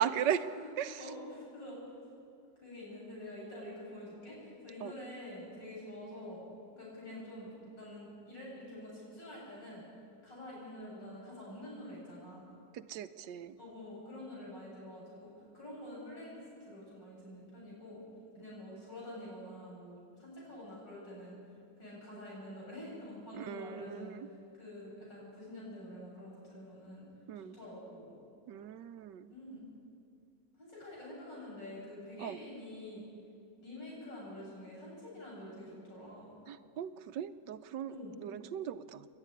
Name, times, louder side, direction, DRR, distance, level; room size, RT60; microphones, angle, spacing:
voice 1, 0.0-0.4 0.8-1.1 4.8-4.9 12.7-13.6 23.3-24.3 27.3-27.6 28.5-29.3 32.2-32.4 36.5-39.1, right 9 dB, 80° right, 12 dB, 1.3 m, -37 dB
voice 2, 1.0-1.8 2.6-6.5 6.7-9.9 10.2-12.5 13.6-18.0 18.4-21.4 21.8-24.2 24.6-27.0 27.3-28.2 29.3-29.6 30.6-33.1 33.6-36.4 37.9-38.1, left 1 dB, 85° left, -5 dB, 8.6 m, -47 dB
27.0 x 11.5 x 9.9 m, 2.5 s
omnidirectional pair, 1.9 m